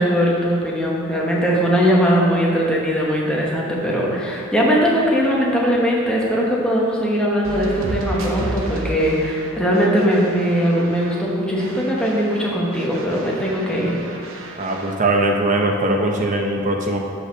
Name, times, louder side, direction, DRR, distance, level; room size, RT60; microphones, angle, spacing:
voice 1, 0.0-14.0, equal, 5° left, -4 dB, 1.1 m, -20 dB
sound 1, 7.4-11.3 11.6-14.9, right 1 dB, 65° right, 0.9 m, -33 dB
voice 2, 14.6-17.0, right 2 dB, 35° right, 2 dB, 0.8 m, -20 dB
6.5 x 5.5 x 5.7 m, 2.4 s
head